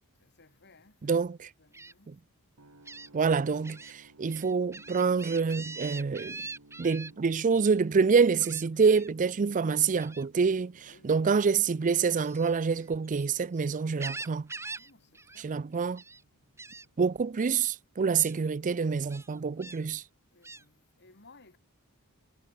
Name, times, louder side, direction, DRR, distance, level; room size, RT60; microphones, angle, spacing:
voice 1, 0.2-1.1 1.6-2.1 8.7-9.0 10.8-11.2 14.8-15.6 19.7-19.9 20.3-21.6, left 3 dB, 50° left, 6.2 m, -60 dB
voice 2, 1.0-1.5 2.1-2.2 3.1-6.4 6.8-14.5 15.4-16.0 17.0-20.0, right 5 dB, 35° right, 0.4 m, -27 dB
Gull seagull, 1.7-1.9 2.8-3.1 3.6-3.9 4.3-7.1 8.4-9.1 10.0-10.3 12.1-13.4 13.8-14.9 15.1-15.4 15.7-16.2 16.6-16.8 17.6-17.7 18.2-18.3 19.1-19.8 20.4-20.6, right 3 dB, 10° right, 1.4 m, -43 dB
sound 1, 2.6-18.5, right 2 dB, 90° right, 3.3 m, -60 dB
head